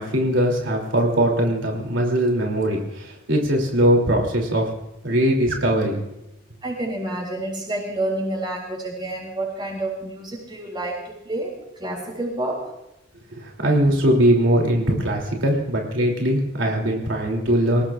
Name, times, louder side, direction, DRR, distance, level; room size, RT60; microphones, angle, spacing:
voice 1, 0.0-4.7 5.0-6.0 13.3-17.8, right 1 dB, 90° right, 0 dB, 3.0 m, -21 dB
voice 2, 6.6-11.5 11.8-12.7, right 1 dB, 25° right, -1 dB, 6.6 m, -29 dB
27.0 x 18.5 x 2.5 m, 0.88 s
head